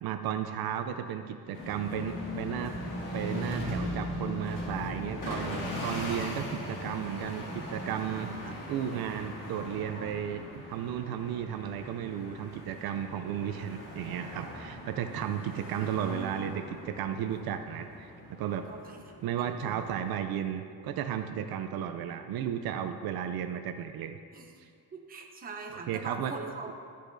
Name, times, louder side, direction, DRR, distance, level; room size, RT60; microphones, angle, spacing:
voice 1, 0.0-8.3 8.7-18.7 19.2-24.2 25.9-26.3, right 9 dB, 70° right, 8 dB, 0.5 m, -34 dB
sound 1, 1.5-20.1, left 1 dB, 55° left, 1.8 m, -39 dB
voice 2, 15.5-16.4 17.3-17.5 18.7-19.8 24.3-24.5 24.9-26.7, right 4 dB, 25° right, 1 dB, 0.6 m, -43 dB
12.0 x 6.5 x 2.6 m, 2.2 s
cardioid pair, 155°, 38 cm